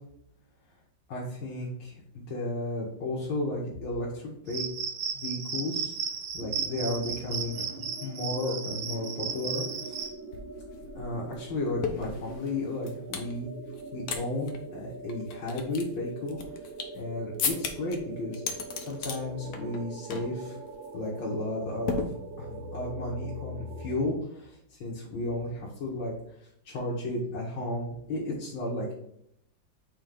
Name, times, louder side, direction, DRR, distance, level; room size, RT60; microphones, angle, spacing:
voice 1, 1.1-4.6 5.1-5.9 6.3-7.6 8.0-10.0 10.9-13.5 13.9-16.4 16.9-20.6 20.9-22.0 22.4-26.1 26.4-28.9, left 2 dB, 90° left, -5 dB, 2.1 m, -33 dB
Cricket, 4.5-10.1, right 7 dB, 65° right, 1.4 m, -34 dB
sound 1, 6.4-23.9, right 2 dB, 90° right, 1.8 m, -43 dB
sound 2, 10.0-10.1 10.3-13.3 13.7-14.2 14.5-14.6 15.1-17.0 17.4-18.0 18.3-19.2 19.5-19.8 20.1-20.4 20.7-20.9 21.9-22.6, left 5 dB, 60° left, 1.2 m, -35 dB
4.5 x 4.3 x 5.2 m, 0.74 s
omnidirectional pair, 2.1 m